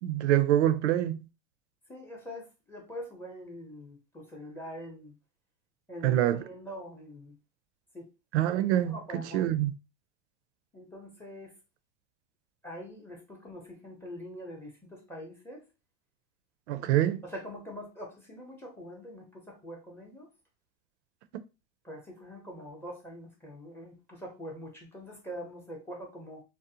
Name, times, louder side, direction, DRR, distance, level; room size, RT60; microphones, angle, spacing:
voice 1, 0.0-1.3 6.0-6.4 8.3-9.7 16.7-17.2, right 12 dB, 85° right, 0.5 m, -26 dB
voice 2, 1.9-5.1 5.9-7.3 7.9-8.1 8.9-9.5 10.7-11.5 12.6-15.6 16.8-20.3 21.8-26.4, equal, 5° left, 0.6 m, -44 dB
2.5 x 2.0 x 2.7 m
supercardioid pair, 125°, 34 cm